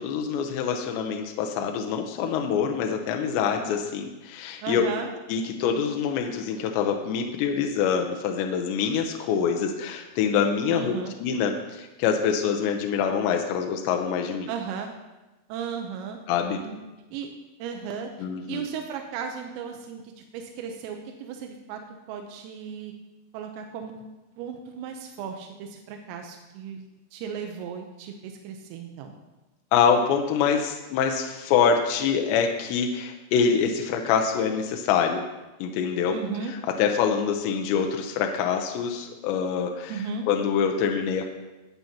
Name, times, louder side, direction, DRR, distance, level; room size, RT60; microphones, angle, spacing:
voice 1, 0.0-4.8 5.3-10.9 11.2-14.5 16.3-16.6 18.2-18.7 29.7-35.2 35.6-36.2 36.8-39.9 40.3-41.3, left 7 dB, 80° left, 3 dB, 2.6 m, -25 dB
voice 2, 4.6-5.1 10.7-11.2 14.5-14.9 15.5-16.2 16.6-16.8 17.1-17.3 17.6-18.1 18.5-22.9 23.3-24.0 24.4-29.1 36.1-36.5 39.9-40.3, right 6 dB, 90° right, 3 dB, 3.5 m, -35 dB
15.0 x 9.1 x 2.9 m, 1.1 s
omnidirectional pair, 5.8 m